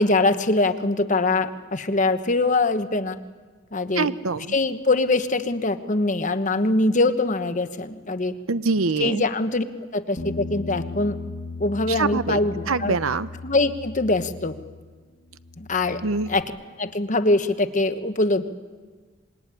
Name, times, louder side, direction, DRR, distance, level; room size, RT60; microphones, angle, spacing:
voice 1, 0.0-3.2 3.7-4.1 4.5-8.3 9.0-9.6 9.9-11.2 11.6-13.0 13.4-14.6 15.6-16.0 16.3-16.4 16.8-18.4, left 2 dB, 35° left, 10 dB, 1.2 m, -23 dB
voice 2, 3.9-4.5 8.5-9.2 11.9-12.4 12.7-13.3 16.0-16.3, right 4 dB, 90° right, 14 dB, 0.9 m, -24 dB
Bass guitar, 10.2-14.9 15.2-16.4, left 3 dB, 55° left, 1.6 m, -37 dB
26.0 x 21.5 x 9.9 m, 1.4 s
head